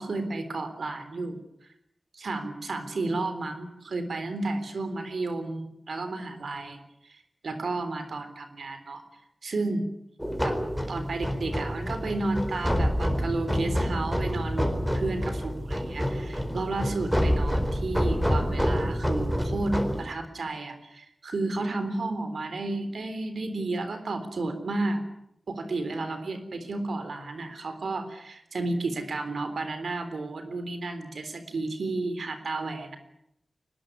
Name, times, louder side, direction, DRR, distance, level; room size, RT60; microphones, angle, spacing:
voice 1, 0.0-1.4 2.1-6.8 7.1-9.0 9.4-9.9 10.4-10.6 10.9-25.0 25.5-33.0, right 2 dB, 85° right, 9 dB, 3.6 m, -32 dB
sound 1, 10.2-20.0, equal, ahead, 4.3 m, -27 dB
23.0 x 19.5 x 9.9 m, 0.78 s
wide cardioid pair, 75°, 0 cm